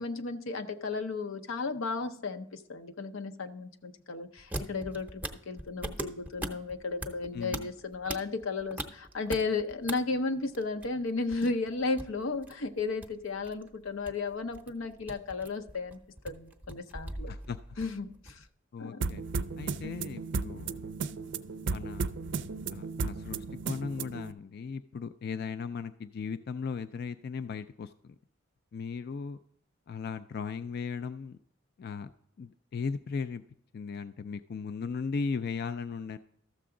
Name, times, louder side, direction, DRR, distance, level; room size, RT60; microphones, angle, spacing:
voice 1, 0.0-16.0 16.2-17.3 17.8-18.4 18.8-19.0, left 3 dB, 85° left, 7 dB, 0.7 m, -34 dB
sound 1, 4.4-9.9 10.2-18.5, right 1 dB, 10° right, 0.7 m, -41 dB
voice 2, 7.3-7.7 17.3-17.6 18.7-19.2 19.6-20.9 21.6-22.1 22.7-28.1 28.7-29.4 29.9-31.4 31.8-32.1 32.4-33.4 33.7-36.2, left 5 dB, 55° left, 11 dB, 0.3 m, -37 dB
sound 2, 19.0-24.3, right 4 dB, 65° right, 0.4 m, -35 dB
13.0 x 6.9 x 3.7 m, 0.69 s
head